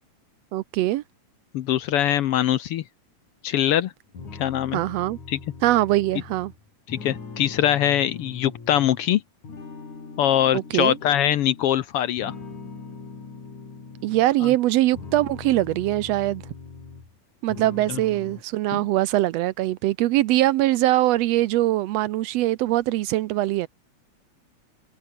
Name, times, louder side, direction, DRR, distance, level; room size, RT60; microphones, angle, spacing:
voice 1, 0.5-1.0 4.7-5.2 5.6-6.5 10.5-11.0 14.0-16.4 17.4-23.7, right 15 dB, 75° right, 1.6 m, -22 dB
voice 2, 1.5-2.8 3.4-3.9 4.3-4.8 5.3-5.4 6.9-9.2 10.2-12.3 14.4-14.5 17.9-18.0 18.7-18.8, left 11 dB, 70° left, 1.5 m, -22 dB
sound 1, 4.1-9.0 9.4-11.7 12.2-14.3 14.8-17.2 17.5-18.4, left 4 dB, 85° left, 6.9 m, -41 dB
omnidirectional pair, 3.3 m